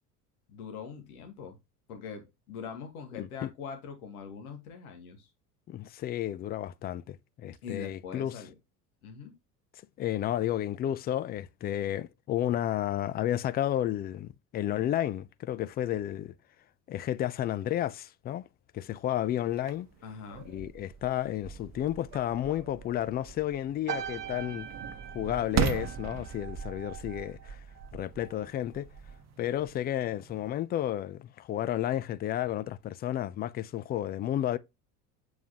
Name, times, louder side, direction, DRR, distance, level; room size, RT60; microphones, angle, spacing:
voice 1, 0.5-1.6 1.9-5.3 7.6-8.5 9.0-9.3 20.0-20.5, left 6 dB, 65° left, 2.3 m, -42 dB
voice 2, 3.2-3.5 5.7-8.4 10.0-16.3 16.9-18.5 18.7-19.9 20.5-24.7 25.1-27.6 27.9-28.9 29.4-34.6, left 12 dB, 20° left, 0.4 m, -32 dB
sound 1, 19.5-30.5, right 8 dB, 35° right, 1.0 m, -39 dB
sound 2, 23.9-28.5 28.8-29.2, right 9 dB, 75° right, 0.9 m, -42 dB
7.9 x 7.0 x 2.9 m
figure-of-eight pair, 70°, 47 cm